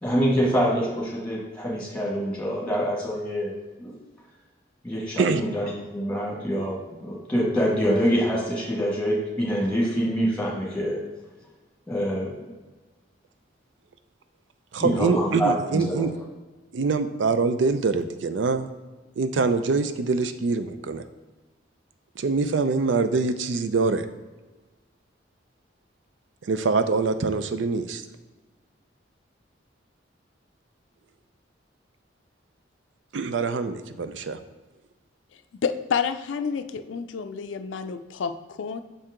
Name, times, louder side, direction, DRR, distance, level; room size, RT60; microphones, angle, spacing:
voice 1, 0.0-3.5 3.8-3.9 4.8-11.0 11.9-12.5 14.8-16.1, equal, 5° left, -4 dB, 1.8 m, -25 dB
voice 2, 14.7-16.1 16.7-18.7 19.2-21.0 22.2-24.1 26.4-28.0 33.1-34.4, right 4 dB, 75° right, 10 dB, 0.4 m, -24 dB
voice 3, 35.6-38.8, left 6 dB, 80° left, 9 dB, 0.4 m, -29 dB
6.5 x 4.5 x 3.7 m, 1.2 s
head